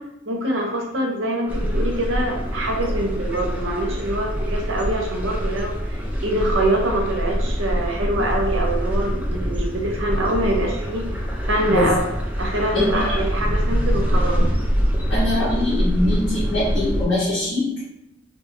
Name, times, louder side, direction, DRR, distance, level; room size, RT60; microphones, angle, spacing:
voice 1, 0.3-12.0 12.4-14.4, right 1 dB, 80° right, 0 dB, 0.7 m, -24 dB
sound 1, 1.5-17.0, equal, 10° right, 0.3 m, -24 dB
voice 2, 15.1-17.7, left 1 dB, 90° left, -9 dB, 1.0 m, -22 dB
2.7 x 2.3 x 3.0 m, 0.89 s
head